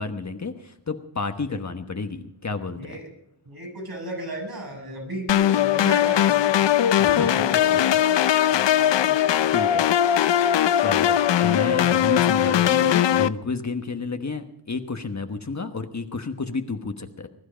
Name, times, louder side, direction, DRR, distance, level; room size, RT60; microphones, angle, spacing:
voice 1, 0.0-3.0 7.0-7.3 8.1-8.3 9.5-9.9 10.8-17.3, left 4 dB, 40° left, 6 dB, 1.3 m, -31 dB
voice 2, 3.5-6.7 7.0-8.2 8.8-9.3, right 1 dB, 55° right, 5 dB, 7.1 m, -35 dB
sound 1, 5.3-13.3, left 11 dB, 80° left, 0.6 m, -20 dB
21.5 x 11.5 x 5.1 m, 0.75 s
cardioid pair, 60°, 43 cm